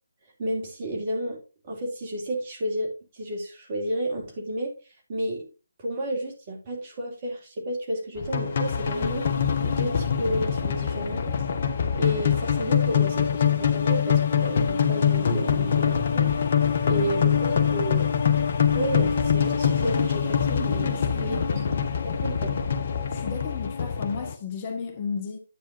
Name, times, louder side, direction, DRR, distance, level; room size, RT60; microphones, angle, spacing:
voice 1, 0.4-1.4 1.6-4.7 5.1-5.5 5.8-9.3 9.6-11.5 11.9-16.3 16.8-18.0 18.7-21.6 22.2-22.6, right 1 dB, 35° right, 3.0 m, -31 dB
sound 1, 8.2-24.3, left 7 dB, 45° left, 1.0 m, -24 dB
voice 2, 20.8-21.7 23.1-25.4, left 5 dB, 30° left, 1.4 m, -34 dB
9.7 x 8.4 x 2.7 m
figure-of-eight pair, 145°, 0 cm